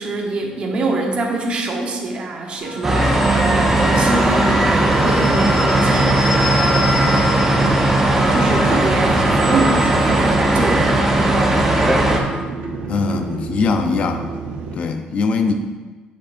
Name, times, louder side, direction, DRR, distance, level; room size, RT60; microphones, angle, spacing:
voice 1, 0.0-7.0 7.5-7.8 8.2-11.6, right 2 dB, 45° right, 1 dB, 1.1 m, -25 dB
sound 1, 2.6-12.4, left 1 dB, 15° left, 1.8 m, -30 dB
sound 2, 2.8-12.2, right 1 dB, 10° right, 0.7 m, -17 dB
sound 3, 3.3-14.8, right 4 dB, 85° right, 0.9 m, -31 dB
voice 2, 12.9-14.3 14.7-15.5, left 4 dB, 50° left, 6 dB, 0.6 m, -21 dB
7.4 x 6.9 x 2.6 m, 1.3 s
cardioid pair, 140°, 3 cm